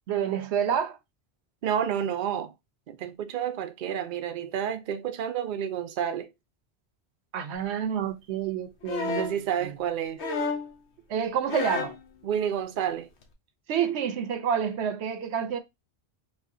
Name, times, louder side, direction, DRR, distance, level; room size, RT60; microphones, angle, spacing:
voice 1, 0.1-1.0 7.3-9.3 9.6-9.7 11.1-12.0 13.7-15.6, right 8 dB, 80° right, 0.9 m, -28 dB
voice 2, 1.6-2.5 2.9-6.3 9.1-10.2 12.2-13.1, right 9 dB, 55° right, 0.6 m, -30 dB
sound 1, 8.8-9.4 10.2-10.7 11.5-12.0 13.2-13.3, left 4 dB, 80° left, 1.1 m, -30 dB
4.9 x 2.4 x 2.6 m
omnidirectional pair, 1.1 m